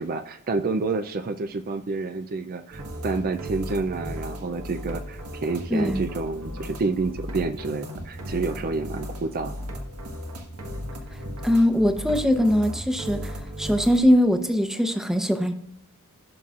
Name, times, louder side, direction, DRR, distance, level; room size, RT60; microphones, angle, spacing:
voice 1, 0.0-9.6, right 3 dB, 45° right, 9 dB, 0.5 m, -29 dB
sound 1, 2.7-14.0, equal, 80° right, 1.4 m, -36 dB
voice 2, 5.7-6.0 11.4-15.5, equal, ahead, 6 dB, 0.8 m, -21 dB
16.5 x 5.6 x 2.4 m, 0.75 s
head